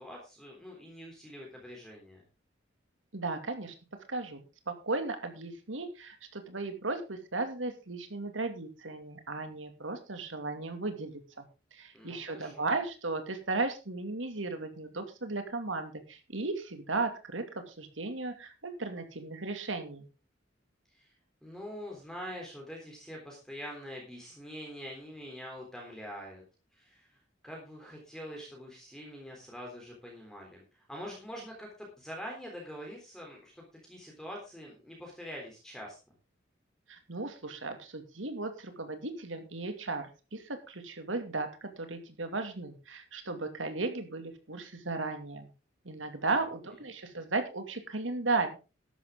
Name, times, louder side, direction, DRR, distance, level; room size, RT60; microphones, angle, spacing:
voice 1, 0.0-2.2 11.9-12.6 20.9-21.1 21.4-26.4 26.7-27.1 27.4-30.6 30.9-36.0, equal, 5° left, -1 dB, 3.5 m, -44 dB
voice 2, 3.1-3.7 4.1-11.5 11.7-20.1 36.9-45.5 45.8-48.6, right 3 dB, 85° right, 7 dB, 2.5 m, -35 dB
13.0 x 11.0 x 3.8 m, 0.30 s
head